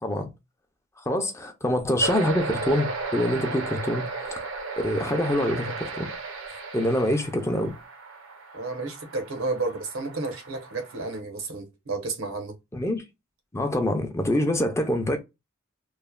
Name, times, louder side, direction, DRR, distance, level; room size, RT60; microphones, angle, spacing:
voice 1, 1.0-4.1 4.4-4.5 4.8-6.1 6.7-7.7 12.7-13.0 13.5-15.2, left 1 dB, 15° left, 0.5 m, -25 dB
sound 1, 2.0-11.2, right 4 dB, 75° right, 0.7 m, -35 dB
voice 2, 8.5-12.5, right 3 dB, 90° right, 1.0 m, -32 dB
3.1 x 2.1 x 2.2 m
head